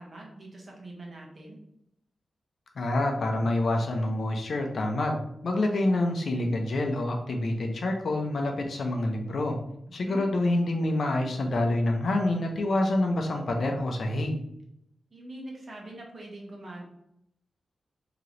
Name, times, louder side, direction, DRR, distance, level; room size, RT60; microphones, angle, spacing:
voice 1, 0.0-1.6 9.9-10.2 15.1-16.8, right 1 dB, 35° right, -1 dB, 1.0 m, -43 dB
voice 2, 2.8-9.6 9.9-14.4, left 1 dB, 55° left, 3 dB, 0.5 m, -27 dB
3.2 x 2.9 x 3.8 m, 0.76 s
wide cardioid pair, 160°, 0 cm